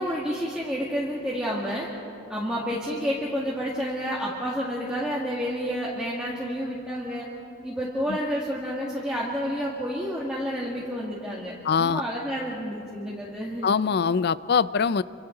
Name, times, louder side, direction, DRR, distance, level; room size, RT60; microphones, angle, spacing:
voice 1, 0.0-1.9 2.3-7.3 7.6-13.7, equal, 5° right, -6 dB, 2.0 m, -30 dB
voice 2, 11.6-12.0 13.6-15.0, left 6 dB, 50° left, 17 dB, 0.4 m, -23 dB
29.0 x 25.5 x 3.9 m, 2.6 s
head